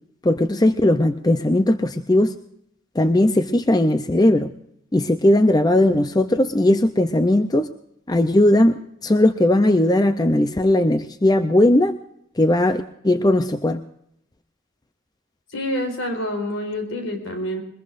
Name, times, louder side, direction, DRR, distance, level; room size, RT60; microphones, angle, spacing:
voice 1, 0.2-2.3 3.0-4.5 4.9-7.7 8.1-11.9 12.4-13.8, left 1 dB, 20° left, 9 dB, 0.5 m, -18 dB
voice 2, 15.5-17.6, left 1 dB, 75° left, 4 dB, 4.6 m, -27 dB
22.5 x 21.0 x 2.6 m, 0.74 s
head